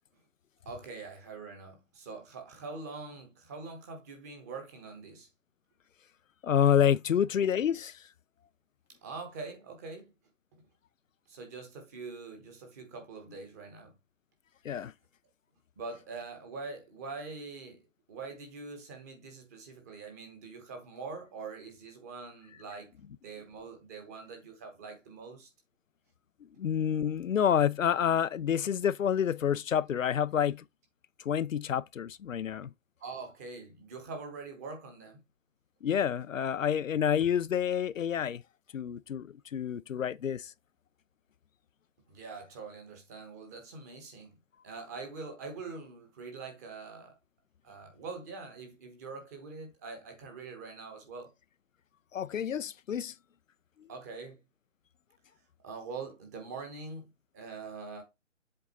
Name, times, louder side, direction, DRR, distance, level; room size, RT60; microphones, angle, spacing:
voice 1, 0.6-5.3 9.0-10.1 11.3-13.9 15.8-22.9 23.2-25.5 33.0-35.2 42.1-44.3 44.6-47.1 47.6-51.3 53.9-54.4 55.6-58.0, right 4 dB, 15° right, 1.0 m, -44 dB
voice 2, 6.4-8.0 14.6-14.9 26.6-30.6 31.2-32.7 35.8-38.4 38.7-40.5 52.1-53.1, left 9 dB, 85° left, 0.5 m, -28 dB
7.7 x 3.9 x 4.0 m
figure-of-eight pair, 155°, 39 cm